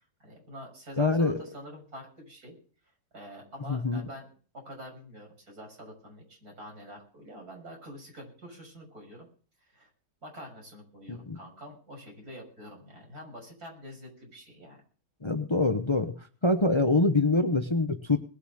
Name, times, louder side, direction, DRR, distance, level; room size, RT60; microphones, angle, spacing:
voice 1, 0.2-2.5 3.1-4.3 4.5-9.3 9.7-9.9 10.2-14.8, equal, 80° right, 0 dB, 7.2 m, -46 dB
voice 2, 1.0-1.4 3.7-4.0 11.1-11.4 15.2-16.1 16.4-18.2, left 2 dB, 20° left, 8 dB, 0.9 m, -25 dB
20.5 x 7.0 x 7.7 m, 0.41 s
omnidirectional pair, 1.6 m